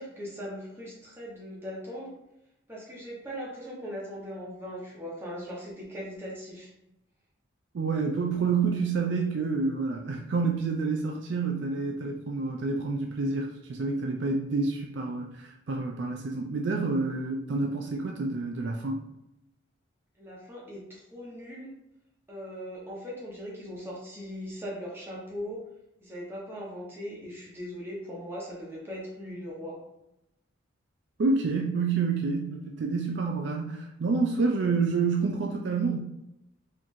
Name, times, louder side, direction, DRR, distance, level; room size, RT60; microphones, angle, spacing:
voice 1, 0.0-2.1 2.7-6.7 20.2-21.7 22.3-25.6 26.0-29.8, equal, 10° right, -5 dB, 1.0 m, -39 dB
voice 2, 7.7-19.0 31.2-36.0, right 4 dB, 60° right, 1 dB, 0.4 m, -28 dB
4.2 x 3.0 x 2.6 m, 0.86 s
head